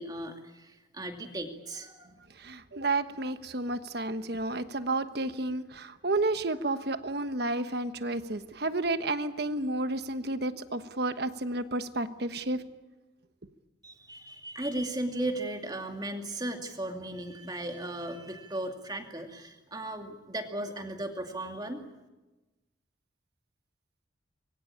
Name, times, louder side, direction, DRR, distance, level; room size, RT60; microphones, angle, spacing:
voice 1, 0.0-2.1 13.8-21.8, right 1 dB, 20° right, 4 dB, 2.5 m, -36 dB
voice 2, 2.3-12.6, right 2 dB, 55° right, 10 dB, 1.3 m, -31 dB
25.5 x 22.0 x 8.8 m, 1.1 s
head